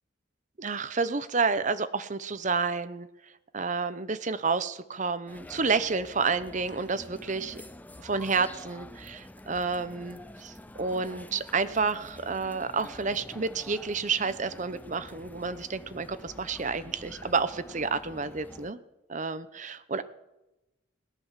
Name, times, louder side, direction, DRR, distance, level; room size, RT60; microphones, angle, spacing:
voice 1, 0.6-3.1 3.5-7.6 8.0-18.8 19.1-20.0, right 4 dB, 40° right, 13 dB, 0.8 m, -30 dB
sound 1, 5.3-18.7, left 1 dB, 10° left, 0.5 m, -47 dB
17.5 x 10.5 x 7.4 m, 0.96 s
head